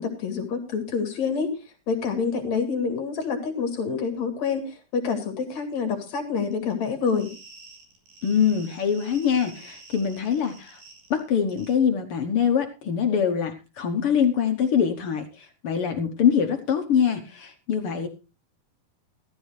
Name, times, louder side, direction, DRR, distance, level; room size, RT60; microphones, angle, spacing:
voice 1, 0.0-1.5 1.9-7.3, left 5 dB, 55° left, 5 dB, 3.7 m, -27 dB
sound 1, 6.5-11.2 11.5-11.7, right 3 dB, 85° right, 5.6 m, -48 dB
voice 2, 8.2-10.8 11.1-18.1, left 7 dB, 70° left, 6 dB, 1.3 m, -24 dB
14.5 x 14.0 x 3.2 m, 0.29 s
omnidirectional pair, 4.0 m